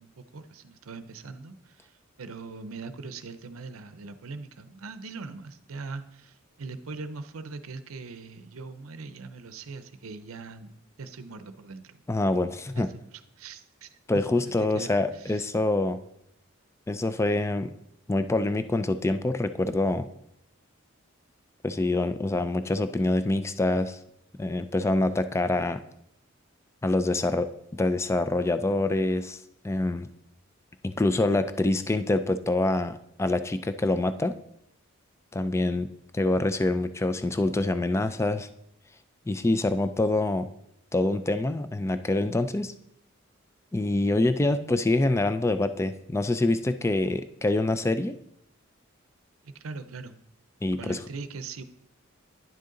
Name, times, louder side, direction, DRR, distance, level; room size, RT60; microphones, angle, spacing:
voice 1, 0.0-12.0 12.8-13.1 13.4-14.0 14.4-15.5 49.4-50.2 50.8-51.6, right 4 dB, 85° right, 11 dB, 0.6 m, -41 dB
voice 2, 12.1-12.9 14.1-16.0 16.9-17.7 18.1-20.1 21.6-24.0 24.4-25.8 26.8-29.4 29.6-30.1 30.8-34.3 35.3-35.9 36.1-38.5 39.3-40.5 40.9-42.7 43.7-48.2 50.6-51.0, left 2 dB, 15° left, 11 dB, 0.4 m, -25 dB
10.5 x 6.6 x 3.8 m, 0.75 s
head